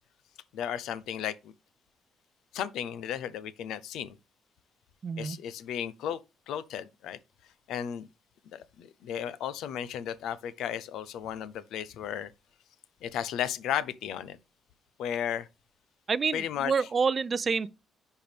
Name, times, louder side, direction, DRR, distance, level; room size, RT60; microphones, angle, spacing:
voice 1, 0.5-1.5 2.5-4.2 5.2-6.2 6.5-7.2 7.7-8.1 8.5-12.3 13.0-14.4 15.0-15.5 16.3-16.7, left 9 dB, 85° left, 0.6 m, -34 dB
voice 2, 5.0-5.4 16.1-17.7, right 5 dB, 40° right, 0.4 m, -28 dB
10.0 x 4.6 x 3.4 m
cardioid pair, 90°, 0 cm